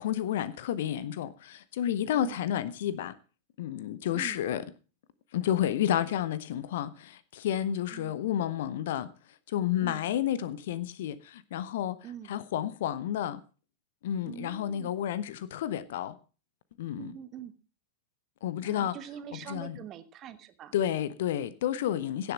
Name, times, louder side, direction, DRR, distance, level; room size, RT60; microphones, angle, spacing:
voice 1, 0.0-3.1 3.6-4.6 5.3-9.1 9.5-12.0 12.3-13.4 14.0-16.2 16.8-17.1 18.4-19.0 19.3-19.8 20.7-22.3, left 11 dB, 55° left, 0.8 m, -31 dB
voice 2, 2.1-2.4 4.1-4.4 7.9-8.2 9.8-10.1 12.0-12.3 14.2-14.9 17.0-17.5 18.6-20.7, right 9 dB, 30° right, 1.3 m, -44 dB
16.5 x 7.1 x 5.3 m
figure-of-eight pair, 90°, 0 cm